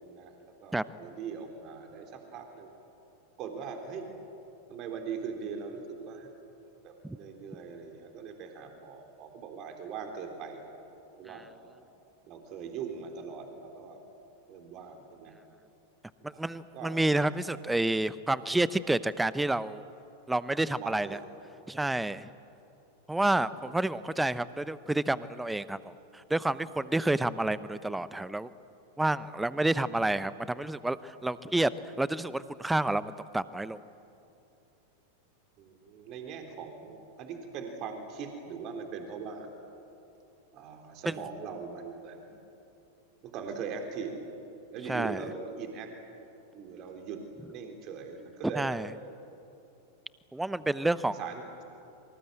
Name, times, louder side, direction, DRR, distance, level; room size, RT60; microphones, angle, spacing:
voice 1, 0.0-2.7 3.4-4.1 4.7-6.3 6.8-10.6 11.2-11.5 12.3-14.0 14.5-15.3 16.2-17.3 20.8-21.2 23.5-24.0 35.6-39.5 40.5-42.4 43.2-44.1 44.7-45.9 46.5-47.2 47.5-48.8 50.6-50.7 51.2-51.4, right 6 dB, 40° right, 5 dB, 3.6 m, -41 dB
voice 2, 16.2-19.8 20.3-21.2 21.7-22.3 23.1-28.5 29.0-31.7 32.0-33.8 41.1-41.2 44.8-45.2 48.5-48.9 50.3-51.2, right 2 dB, 5° right, 17 dB, 0.8 m, -29 dB
26.5 x 25.0 x 7.9 m, 2.8 s
figure-of-eight pair, 90°, 0 cm